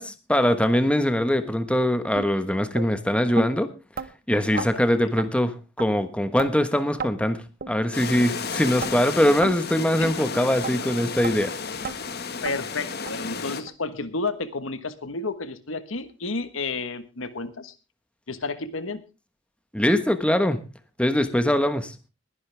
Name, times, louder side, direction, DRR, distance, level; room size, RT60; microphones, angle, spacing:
voice 1, 0.0-3.7 4.3-11.5 19.7-20.6 21.0-21.9, equal, 5° left, 10 dB, 1.3 m, -22 dB
sound 1, 2.2-2.3 2.8-2.9 3.4-3.5 4.0-4.1 4.6-4.7 5.2-5.3 5.8-5.9 6.4-6.5 7.0-7.1 7.6-7.7 8.2-8.3 8.8-8.9 9.4-9.6 10.0-10.2 10.6-10.7 11.2-11.4 11.8-12.0 12.5-12.6 13.1-13.2 13.7-13.8 14.3-14.4 14.9-15.0, right 5 dB, 50° right, 1.0 m, -33 dB
voice 2, 4.5-5.1 10.0-10.1 12.4-17.7 18.3-19.0, left 3 dB, 80° left, 12 dB, 1.4 m, -31 dB
sound 2, 7.9-13.6, left 5 dB, 55° left, 1.6 m, -32 dB
21.0 x 11.0 x 3.4 m, 0.30 s
head